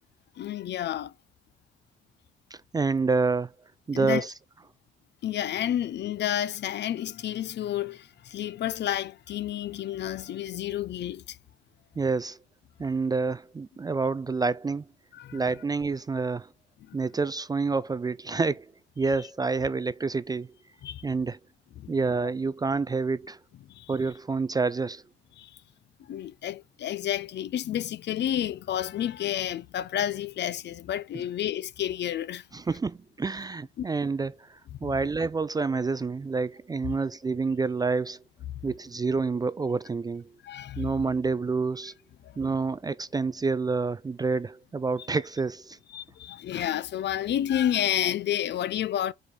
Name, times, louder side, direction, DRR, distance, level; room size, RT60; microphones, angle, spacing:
voice 1, 0.4-1.1 3.9-4.3 5.2-11.4 15.1-15.4 16.9-17.0 20.8-21.0 21.8-21.9 23.7-23.9 25.4-25.5 26.1-32.4 33.8-33.9 34.8-34.9 40.4-40.9 42.2-42.3 45.9-49.1, left 11 dB, 60° left, 0.6 m, -30 dB
voice 2, 2.5-3.5 3.9-4.3 12.0-12.4 12.8-14.9 15.3-16.5 16.9-20.5 21.0-21.4 21.9-23.4 23.9-25.0 32.5-38.2 38.6-40.3 40.8-41.9 42.4-45.8, right 4 dB, 20° right, 0.3 m, -28 dB
5.2 x 4.9 x 4.1 m
cardioid pair, 90°, 20 cm